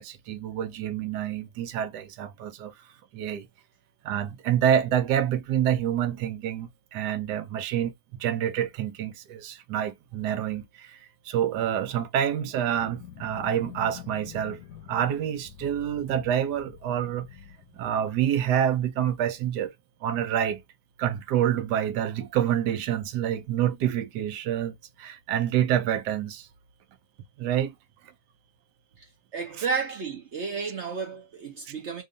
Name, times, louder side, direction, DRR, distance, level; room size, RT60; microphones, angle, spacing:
voice 1, 0.0-2.7 3.1-3.5 4.0-11.0 11.3-14.6 14.9-17.3 17.8-19.7 20.0-20.6 21.0-26.5 27.4-27.7, right 10 dB, 80° right, 1.2 m, -27 dB
sound 1, 12.6-18.6, left 9 dB, 70° left, 1.0 m, -46 dB
voice 2, 29.3-32.0, right 5 dB, 55° right, 0.8 m, -32 dB
2.9 x 2.7 x 3.7 m
omnidirectional pair, 1.8 m